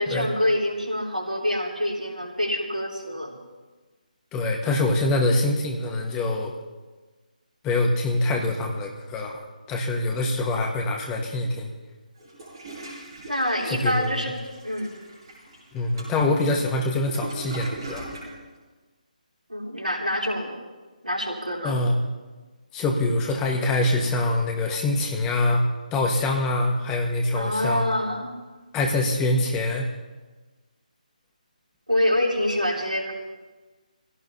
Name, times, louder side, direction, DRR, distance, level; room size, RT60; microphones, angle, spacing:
voice 1, 0.0-3.4 13.3-14.4 14.6-14.9 19.5-20.6 21.0-21.8 27.3-28.3 31.9-33.1, left 1 dB, 80° right, -2 dB, 3.7 m, -26 dB
voice 2, 4.3-6.5 7.6-11.7 13.7-14.2 15.7-18.0 21.6-22.0 22.7-25.6 25.9-27.9 28.7-29.9, left 2 dB, 10° left, 1 dB, 1.6 m, -24 dB
Toilet flush, 12.2-18.3, right 2 dB, 30° right, 6.6 m, -41 dB
23.5 x 17.0 x 2.9 m, 1.3 s
figure-of-eight pair, 150°, 5 cm